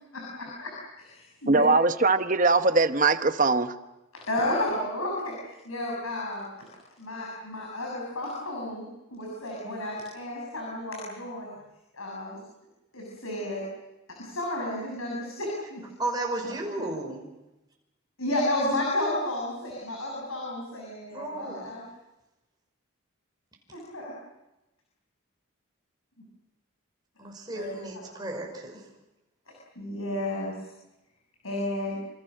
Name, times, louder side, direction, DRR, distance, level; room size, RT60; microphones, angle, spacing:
voice 1, 0.1-1.6 4.1-6.7 7.0-12.4 12.9-13.6 14.2-15.8 18.2-21.8 23.7-24.1 27.5-28.0 29.5-30.7 31.4-32.0, left 1 dB, 80° left, -2 dB, 7.2 m, -32 dB
voice 2, 1.5-3.7, right 3 dB, 40° right, 10 dB, 1.0 m, -21 dB
voice 3, 16.0-17.3 21.1-21.6 27.2-28.8, right 2 dB, 20° right, 0 dB, 5.6 m, -33 dB
27.5 x 27.0 x 6.6 m, 0.99 s
head